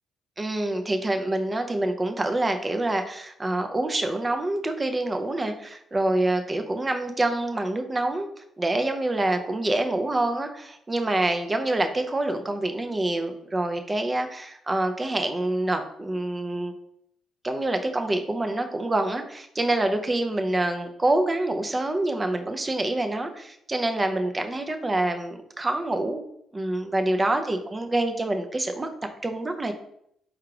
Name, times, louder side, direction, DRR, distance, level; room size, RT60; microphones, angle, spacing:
voice 1, 0.4-8.3 8.6-16.7 17.4-26.2 26.5-28.9 29.2-29.7, right 2 dB, 20° right, 6 dB, 0.5 m, -26 dB
4.7 x 2.4 x 4.7 m, 0.73 s
cardioid pair, 90°, 0 cm